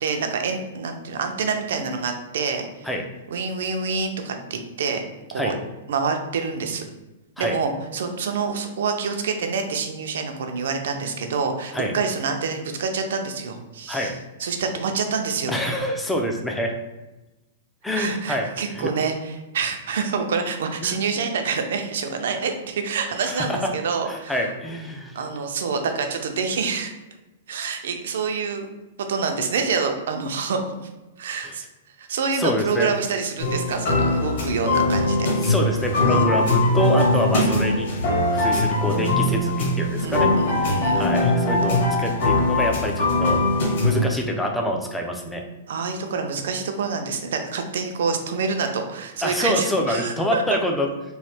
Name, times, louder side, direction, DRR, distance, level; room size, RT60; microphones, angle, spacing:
voice 1, 0.0-2.7 3.3-5.0 5.3-5.5 5.9-6.8 7.4-14.1 14.4-15.6 17.9-24.4 25.1-26.9 27.5-28.7 29.0-30.9 31.2-31.6 32.0-35.2 36.1-36.3 40.0-41.0 45.7-50.6, right 5 dB, 70° right, 5 dB, 0.5 m, -27 dB
voice 2, 15.5-16.7 17.8-18.9 20.8-21.0 23.3-23.7 24.1-25.2 31.4-31.5 32.3-32.9 35.4-37.9 38.3-40.3 40.6-43.4 43.8-45.4 49.2-50.9, left 1 dB, 5° left, 1 dB, 0.3 m, -26 dB
sound 1, 33.4-44.0, left 2 dB, 55° left, 1.3 m, -21 dB
3.1 x 2.1 x 4.2 m, 1.1 s
supercardioid pair, 170°, 0 cm